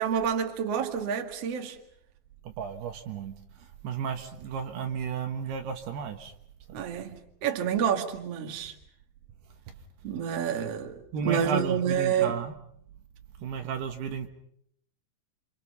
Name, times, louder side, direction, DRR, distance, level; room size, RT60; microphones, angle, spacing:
voice 1, 0.0-1.8 6.7-8.7 10.0-12.4, right 8 dB, 45° right, 2.5 m, -28 dB
voice 2, 2.5-3.3 3.8-6.3 10.5-10.7 11.1-12.5 13.4-14.3, right 6 dB, 70° right, 3.4 m, -33 dB
30.0 x 27.0 x 5.5 m
omnidirectional pair, 5.1 m